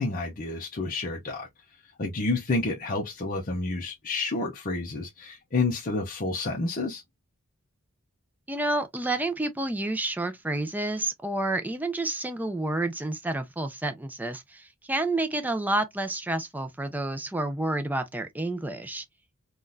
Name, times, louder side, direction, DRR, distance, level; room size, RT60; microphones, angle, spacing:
voice 1, 0.0-1.5 2.0-7.0, left 3 dB, 40° left, 0.6 m, -29 dB
voice 2, 8.5-19.0, right 2 dB, 10° right, 0.4 m, -29 dB
3.6 x 2.3 x 2.6 m
head